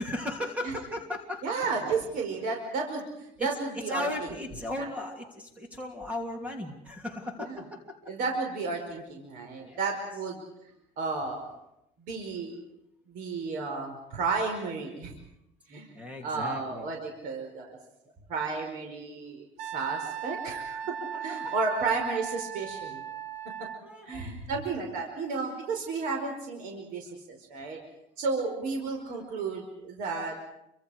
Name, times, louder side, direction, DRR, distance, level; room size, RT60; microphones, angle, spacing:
voice 1, 0.0-1.6 3.4-3.5 3.9-8.0 9.7-9.8 15.9-16.9 21.1-21.5 23.8-24.6, left 1 dB, 10° right, 3 dB, 3.1 m, -36 dB
voice 2, 1.4-4.1 4.8-4.9 7.4-7.6 8.1-10.5 11.0-11.5 12.0-12.6 13.1-15.1 15.7-17.8 18.3-23.0 24.0-27.8 28.2-30.3, right 4 dB, 65° right, 2 dB, 5.0 m, -33 dB
Wind instrument woodwind instrument, 19.6-23.8, right 9 dB, 50° right, 1.5 m, -37 dB
29.5 x 25.0 x 5.0 m, 0.80 s
cardioid pair, 155°, 15 cm